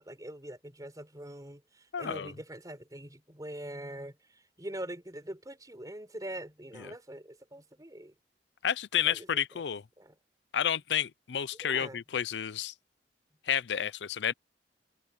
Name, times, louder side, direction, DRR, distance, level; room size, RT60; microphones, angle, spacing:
voice 1, 0.0-8.1 9.0-9.3 10.0-10.1 11.6-12.0, right 1 dB, 20° right, 4.1 m, -43 dB
voice 2, 1.9-2.3 6.8-6.9 8.6-9.8 10.5-12.7 13.4-14.3, left 9 dB, 75° left, 0.5 m, -31 dB
head